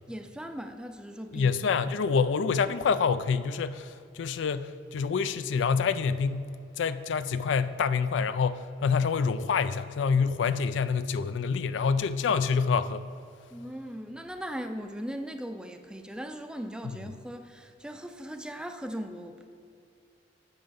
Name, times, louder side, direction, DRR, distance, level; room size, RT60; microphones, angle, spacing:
voice 1, 0.1-1.5 13.5-19.5, equal, 5° right, 7 dB, 0.4 m, -39 dB
voice 2, 1.3-6.5 6.8-13.1 16.9-17.1, left 5 dB, 70° left, 13 dB, 0.4 m, -27 dB
9.4 x 5.3 x 6.9 m, 2.6 s
head